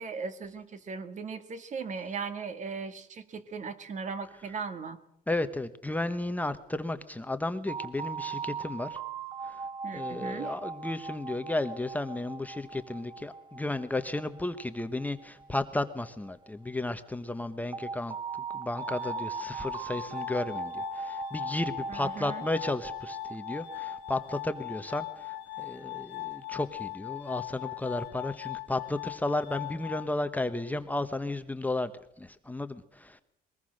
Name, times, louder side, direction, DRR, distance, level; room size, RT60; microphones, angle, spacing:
voice 1, 0.0-5.0 9.8-10.6 21.9-22.4, right 5 dB, 45° right, 10 dB, 2.0 m, -38 dB
voice 2, 5.3-9.0 9.4-9.6 9.9-18.2 18.5-31.9 32.2-33.2, left 2 dB, 10° left, 9 dB, 1.0 m, -33 dB
sound 1, 7.7-16.5 17.7-26.9, right 5 dB, 25° right, 0.8 m, -40 dB
Glass, 18.7-30.7, left 22 dB, 85° left, 1.1 m, -40 dB
22.0 x 19.0 x 6.5 m, 0.77 s
cardioid pair, 110°, 17 cm